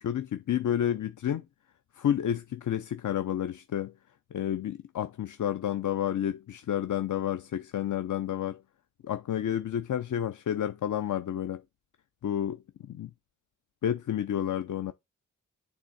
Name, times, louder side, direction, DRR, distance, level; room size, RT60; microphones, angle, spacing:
voice 1, 0.0-1.4 1.9-3.9 4.3-8.6 9.0-11.6 12.2-13.1 13.8-14.9, left 10 dB, 70° left, 0.5 m, -30 dB
8.9 x 3.5 x 4.0 m
cardioid pair, 65°, 32 cm